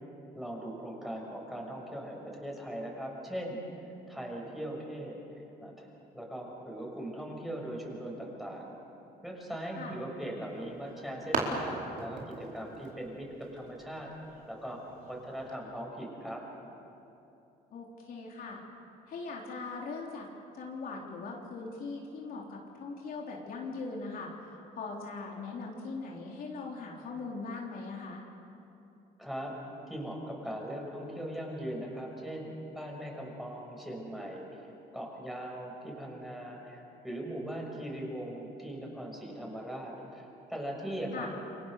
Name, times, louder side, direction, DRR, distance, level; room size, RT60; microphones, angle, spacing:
voice 1, 0.3-3.6 4.1-5.2 5.6-5.9 6.1-8.7 9.2-14.1 14.5-14.8 15.1-16.4 29.2-29.5 29.9-41.3, right 1 dB, ahead, -1 dB, 6.6 m, -40 dB
sound 1, 10.4-15.5, right 3 dB, 55° right, 4.6 m, -39 dB
voice 2, 17.7-18.6 19.1-20.3 20.5-24.3 24.8-28.2 41.1-41.3, left 3 dB, 60° left, -1 dB, 3.8 m, -40 dB
29.5 x 23.5 x 6.8 m, 2.9 s
cardioid pair, 110°, 17 cm